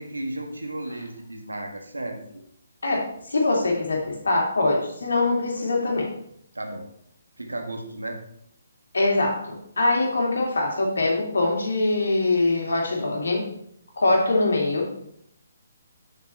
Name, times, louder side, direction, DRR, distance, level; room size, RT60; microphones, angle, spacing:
voice 1, 0.0-2.2 6.6-6.9 7.4-8.2, right 1 dB, 85° right, 3 dB, 1.7 m, -34 dB
voice 2, 2.8-6.1 8.9-9.4 9.8-13.4 14.0-14.9, left 2 dB, 70° left, -1 dB, 2.8 m, -23 dB
7.3 x 6.6 x 4.3 m, 0.71 s
figure-of-eight pair, 140°, 0 cm